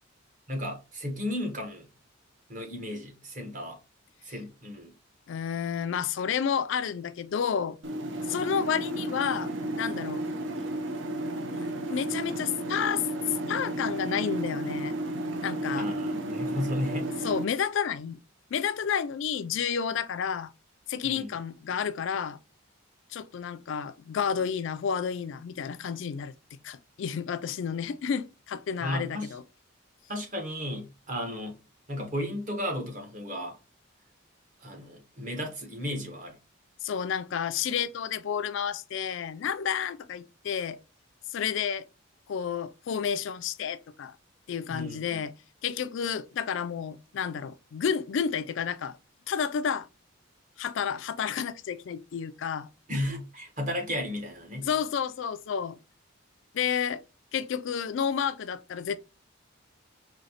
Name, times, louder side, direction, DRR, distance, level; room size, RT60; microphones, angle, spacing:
voice 1, 0.5-1.9 2.5-3.8 4.2-4.9 15.7-17.1 21.0-21.3 28.8-29.4 30.1-31.6 31.9-33.6 34.6-36.4 44.7-45.2 52.9-54.7, left 1 dB, 35° right, 1.1 m, -34 dB
voice 2, 5.3-7.8 8.3-9.5 9.8-10.3 11.5-13.0 13.5-15.0 15.4-15.9 17.2-18.2 18.5-20.5 20.9-22.4 23.1-26.3 26.6-29.4 36.8-40.8 41.3-41.9 42.3-44.2 44.5-45.3 45.6-49.0 49.3-49.9 50.6-52.7 54.6-55.8 56.5-57.0 57.3-59.0, left 7 dB, 60° left, 0.3 m, -30 dB
sound 1, 7.8-17.4, right 1 dB, 60° right, 0.5 m, -33 dB
4.2 x 2.8 x 2.8 m
head